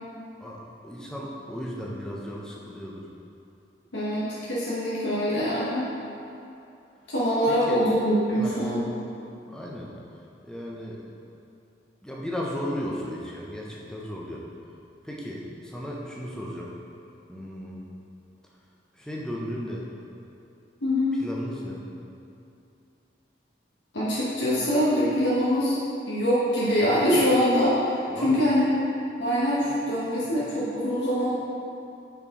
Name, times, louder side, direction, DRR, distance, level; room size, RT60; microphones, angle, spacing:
voice 1, 0.4-3.1 7.5-7.8 8.4-8.5 9.5-9.9 10.4-11.0 12.0-14.4 15.0-16.7 17.3-17.8 18.9-19.9 21.2-21.8 28.1-28.4, equal, 5° left, -4 dB, 0.6 m, -35 dB
voice 2, 3.9-5.9 7.1-8.9 20.8-21.2 23.9-25.7 26.1-28.7 29.2-31.3, equal, 80° left, -9 dB, 1.0 m, -24 dB
5.7 x 4.4 x 4.1 m, 2.7 s
head